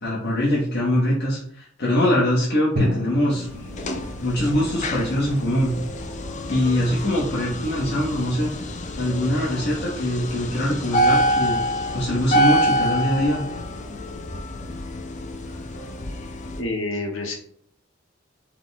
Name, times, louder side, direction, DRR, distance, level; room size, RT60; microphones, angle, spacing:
voice 1, 0.0-3.5 4.2-5.7 6.5-8.5 9.0-11.6 11.9-13.4, left 1 dB, 55° left, -5 dB, 1.0 m, -23 dB
sound 1, 2.7-9.3, left 1 dB, 10° left, 0.9 m, -44 dB
Drum, 2.8-6.8, left 1 dB, 90° right, 1.0 m, -32 dB
sound 2, 3.5-16.6, equal, 40° left, 0.5 m, -27 dB
voice 2, 16.6-17.4, left 2 dB, 80° left, 1 dB, 1.0 m, -27 dB
4.5 x 2.2 x 3.9 m, 0.63 s
head